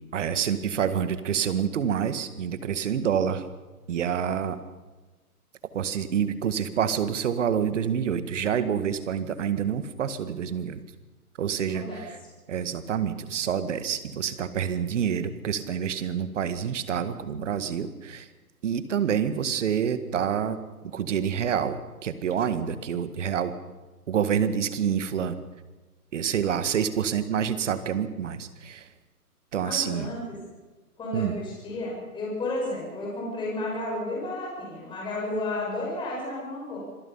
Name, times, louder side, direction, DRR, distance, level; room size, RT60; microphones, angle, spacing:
voice 1, 0.1-3.4 3.9-4.6 5.7-10.8 11.4-12.2 12.5-18.3 18.6-23.5 24.1-25.3 26.1-28.8 29.5-30.1 31.1-31.3, right 8 dB, 55° right, 12 dB, 1.9 m, -27 dB
voice 2, 11.7-12.3 29.6-30.4 31.0-36.8, left 2 dB, 10° left, -3 dB, 6.3 m, -32 dB
26.5 x 17.5 x 5.7 m, 1.2 s
hypercardioid pair, 155°, 45 cm